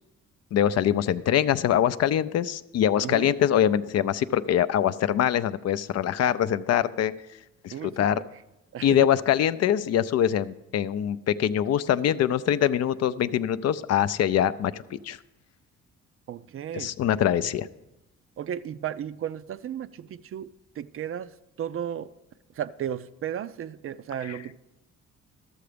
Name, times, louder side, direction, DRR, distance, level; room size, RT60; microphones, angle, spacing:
voice 1, 0.5-7.1 7.6-8.2 8.8-15.2 16.7-17.7 24.2-24.4, left 10 dB, 55° left, 14 dB, 0.4 m, -24 dB
voice 2, 3.0-3.3 7.7-8.2 8.7-9.1 16.3-16.9 18.4-20.5 20.8-21.3 21.6-22.1 22.6-24.6, right 10 dB, 45° right, 15 dB, 0.4 m, -34 dB
12.5 x 6.9 x 5.0 m, 0.93 s
cardioid pair, 90°, 30 cm